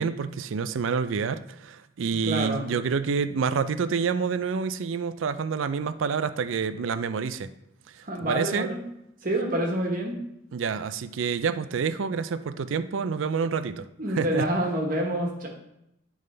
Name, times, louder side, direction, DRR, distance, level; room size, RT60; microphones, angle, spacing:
voice 1, 0.0-7.5 7.9-8.7 10.5-14.5, right 5 dB, 80° right, 12 dB, 0.4 m, -28 dB
voice 2, 2.2-2.6 8.0-8.8 9.2-10.2 14.0-15.5, right 1 dB, 45° right, 0 dB, 1.3 m, -27 dB
10.5 x 3.6 x 3.3 m, 0.80 s
head